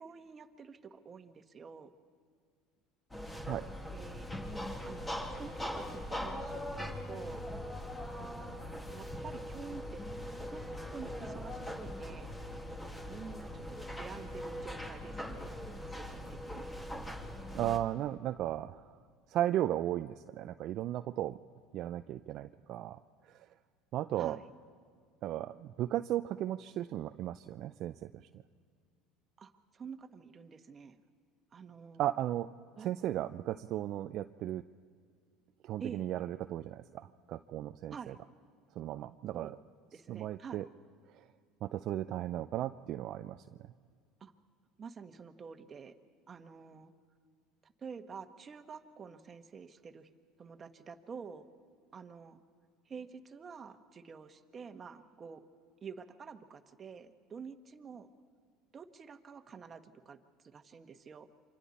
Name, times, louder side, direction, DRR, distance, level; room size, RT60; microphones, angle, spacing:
voice 1, 0.0-1.9 3.9-4.3 4.8-6.7 7.1-7.5 8.2-8.6 8.9-10.1 10.5-10.6 10.9-12.3 13.1-15.6 15.9-16.8 24.2-24.5 29.4-31.0 31.5-32.0 32.8-32.9 35.8-36.1 37.9-38.2 39.3-39.5 39.9-40.6 44.2-44.3 44.8-45.9 46.3-46.9 47.6-50.1 50.4-51.5 51.9-52.4 52.8-55.4 55.8-58.1 58.7-61.3, right 6 dB, 35° right, 7 dB, 1.4 m, -48 dB
sound 1, 3.1-17.8, left 1 dB, 15° left, 2.5 m, -41 dB
voice 2, 17.5-18.9 19.3-21.4 21.7-23.0 23.3-23.5 23.9-24.4 25.2-28.3 32.0-32.5 32.8-34.6 35.6-38.1 38.8-39.6 40.1-40.7 41.6-43.7, right 13 dB, 55° right, 9 dB, 0.5 m, -35 dB
28.5 x 25.0 x 4.2 m, 2.1 s
supercardioid pair, 95°, 0 cm